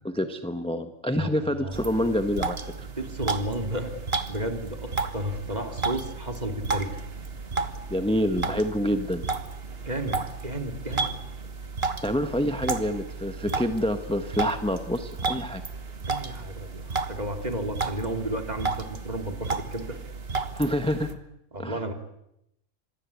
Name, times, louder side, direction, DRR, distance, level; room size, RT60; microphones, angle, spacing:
voice 1, 0.0-2.9 7.9-9.2 12.0-15.6 20.5-21.1 21.6-21.8, equal, 5° left, 8 dB, 1.3 m, -27 dB
voice 2, 1.1-2.0 3.0-3.9 4.3-7.0 9.9-11.1 16.0-20.0 21.5-21.9, right 1 dB, 30° right, 6 dB, 2.9 m, -32 dB
sound 1, 1.7-21.1, right 4 dB, 50° right, 1.7 m, -33 dB
26.0 x 21.0 x 8.4 m, 0.79 s
omnidirectional pair, 1.4 m